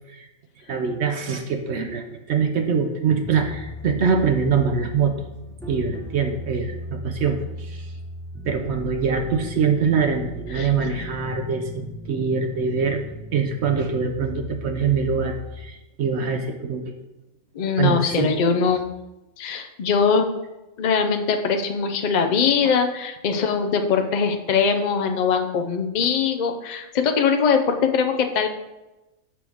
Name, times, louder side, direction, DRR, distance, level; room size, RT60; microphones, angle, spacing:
voice 1, 0.7-5.2 5.7-7.9 8.4-13.0 13.3-16.8 17.8-18.3 22.6-22.8, right 6 dB, 60° right, 5 dB, 0.8 m, -24 dB
sound 1, 3.1-15.6, left 2 dB, 5° left, 0.9 m, -36 dB
voice 2, 17.6-18.8 19.4-20.3 20.8-28.5, left 6 dB, 85° left, 5 dB, 0.4 m, -21 dB
6.2 x 6.0 x 3.5 m, 0.99 s
omnidirectional pair, 1.5 m